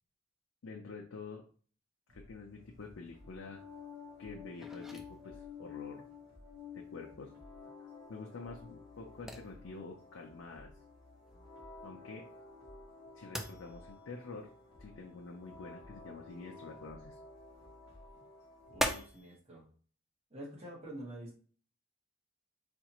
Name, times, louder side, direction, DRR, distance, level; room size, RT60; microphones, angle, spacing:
voice 1, 0.6-1.4 2.1-3.7 4.2-6.0 6.7-7.3 8.1-10.7 11.8-12.3 13.1-14.5 14.8-17.2, left 4 dB, 80° left, 0 dB, 0.6 m, -47 dB
sound 1, 2.1-18.9, left 1 dB, 80° right, 1.7 m, -61 dB
sound 2, 2.7-19.4, equal, ahead, 0.3 m, -45 dB
sound 3, 3.2-19.1, left 5 dB, 20° left, 0.8 m, -52 dB
voice 2, 18.7-19.7 20.3-21.3, equal, 30° right, -2 dB, 1.2 m, -47 dB
4.3 x 2.4 x 2.9 m, 0.43 s
head